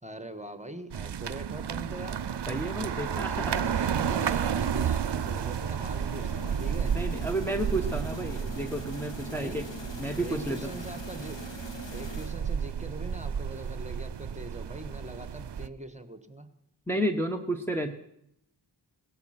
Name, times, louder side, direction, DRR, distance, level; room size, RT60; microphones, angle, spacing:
voice 1, 0.0-2.2 3.6-6.9 9.2-9.7 10.2-11.4 11.9-16.5, right 1 dB, 15° right, 10 dB, 1.4 m, -42 dB
sound 1, 0.9-15.7, right 8 dB, 70° right, 0.6 m, -32 dB
sound 2, 2.1-12.7, equal, 85° left, 2.2 m, -44 dB
voice 2, 2.5-3.7 6.9-9.7 10.0-10.7 16.9-17.9, right 1 dB, 5° left, 3 dB, 1.1 m, -31 dB
17.5 x 13.0 x 5.9 m, 0.77 s
wide cardioid pair, 40°, 43 cm